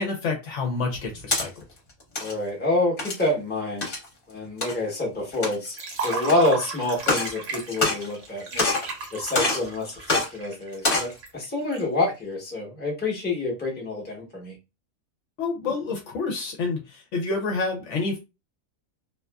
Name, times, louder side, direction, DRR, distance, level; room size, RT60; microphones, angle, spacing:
voice 1, 0.0-1.5 15.4-18.2, left 3 dB, 65° left, 0.9 m, -28 dB
sound 1, 0.9-1.5 2.0-2.3 3.0-3.3 3.8-4.0 4.6-4.7 5.3-5.8 6.3-6.4 7.0-7.3 7.7-8.3 8.6-8.9 9.3-9.7 10.1-10.3 10.7-11.1, left 2 dB, 45° left, 1.0 m, -25 dB
voice 2, 2.2-4.0 4.3-5.7 6.0-8.7 9.1-14.5, left 2 dB, 10° left, 0.7 m, -27 dB
Liquid, 5.7-11.8, right 4 dB, 65° right, 1.1 m, -34 dB
2.5 x 2.4 x 2.2 m
omnidirectional pair, 1.5 m